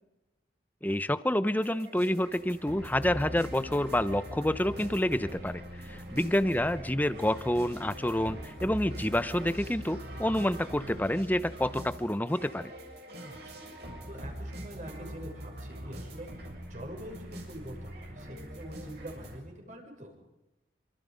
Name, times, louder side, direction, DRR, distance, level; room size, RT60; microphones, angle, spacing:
voice 1, 0.8-5.6 5.9-12.7, left 1 dB, 10° left, 13 dB, 0.9 m, -28 dB
sound 1, 1.6-19.4, equal, 65° right, 7.4 m, -43 dB
voice 2, 13.2-13.6 14.1-20.2, equal, 45° right, 2 dB, 6.7 m, -45 dB
27.5 x 26.5 x 5.2 m, 0.97 s
head